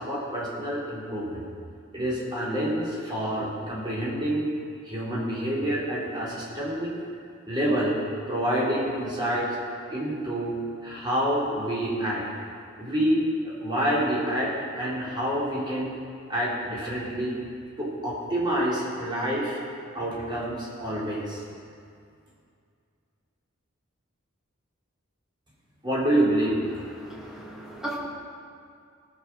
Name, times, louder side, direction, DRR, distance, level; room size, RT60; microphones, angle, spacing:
voice 1, 0.0-1.4 1.9-4.5 4.8-6.9 7.5-8.0 8.3-9.6 9.9-10.5 10.8-12.3 12.8-16.0 16.3-17.4 17.8-19.6 19.9-21.4 25.8-26.6, right 1 dB, 25° right, -7 dB, 3.8 m, -27 dB
voice 2, 26.9-28.0, right 1 dB, 5° right, -6 dB, 2.7 m, -37 dB
18.0 x 6.9 x 6.2 m, 2.3 s
head